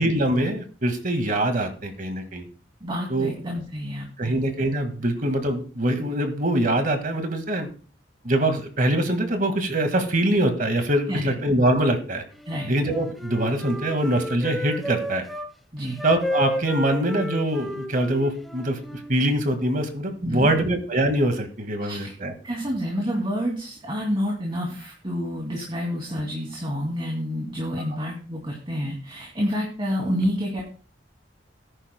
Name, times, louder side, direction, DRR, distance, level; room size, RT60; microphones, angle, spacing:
voice 1, 0.0-2.5 3.1-3.3 4.2-7.7 8.2-12.2 12.7-15.2 16.0-22.3, right 1 dB, 50° right, 6 dB, 1.8 m, -23 dB
voice 2, 2.8-4.3 11.1-11.3 12.5-12.7 15.7-16.0 20.2-20.6 21.8-22.1 22.4-30.6, equal, 30° right, -1 dB, 2.4 m, -28 dB
Wind instrument woodwind instrument, 12.4-15.5 16.0-19.1, left 1 dB, ahead, 0.8 m, -32 dB
18.5 x 10.0 x 2.2 m, 0.38 s
head